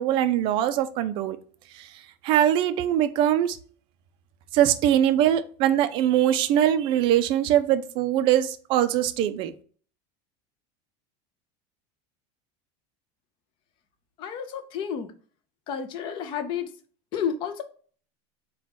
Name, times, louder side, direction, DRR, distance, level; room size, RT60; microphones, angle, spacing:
voice 1, 0.0-1.4 1.8-1.9 2.2-3.6 4.5-9.5, right 11 dB, 35° right, 0.4 m, -22 dB
voice 2, 14.2-15.1 15.7-16.7 17.1-17.6, left 7 dB, 35° left, 0.5 m, -31 dB
4.4 x 2.3 x 4.1 m
cardioid pair, 170°, 15 cm